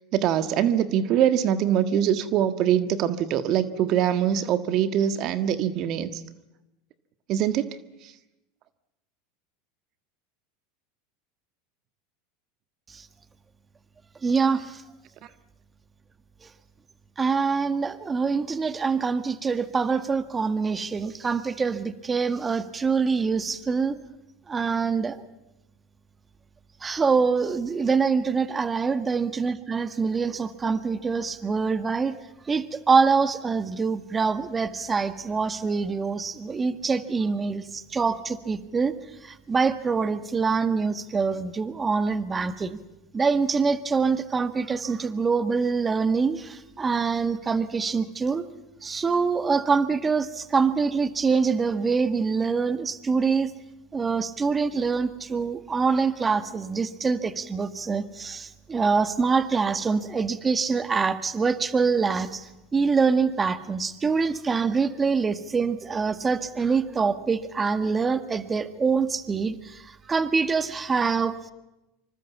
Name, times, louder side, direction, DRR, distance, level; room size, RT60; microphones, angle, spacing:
voice 1, 0.1-6.2 7.3-7.7 8.0-8.1, right 10 dB, 50° right, 10 dB, 1.6 m, -23 dB
voice 2, 14.2-14.8 16.4-16.5 17.2-24.0 24.5-25.2 26.8-32.1 32.4-38.9 39.2-42.8 43.1-48.5 48.8-53.5 53.9-71.4, right 5 dB, 20° right, 11 dB, 1.6 m, -25 dB
26.5 x 24.5 x 7.3 m, 0.97 s
hypercardioid pair, 95°, 0 cm